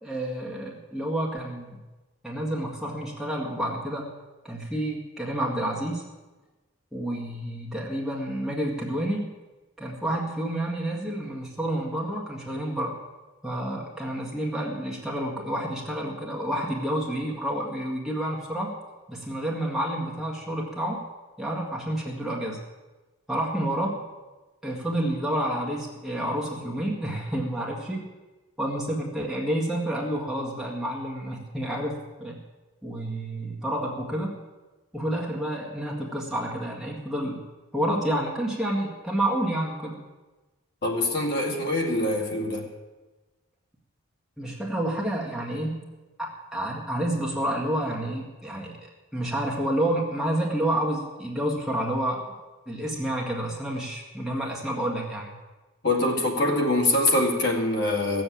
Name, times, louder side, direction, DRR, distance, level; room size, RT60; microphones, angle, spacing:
voice 1, 0.0-1.8 2.2-4.1 4.4-6.0 6.9-9.3 9.8-12.9 13.4-18.7 19.1-21.0 21.4-22.6 23.3-24.0 24.6-28.0 28.6-32.4 32.8-34.4 34.9-37.4 37.7-40.0 44.4-45.9 46.2-48.8 49.1-52.3 52.7-55.3, right 1 dB, ahead, -4 dB, 1.9 m, -29 dB
voice 2, 40.8-42.6 55.8-58.2, left 1 dB, 50° left, 0 dB, 2.3 m, -24 dB
15.5 x 7.8 x 8.5 m, 1.2 s
head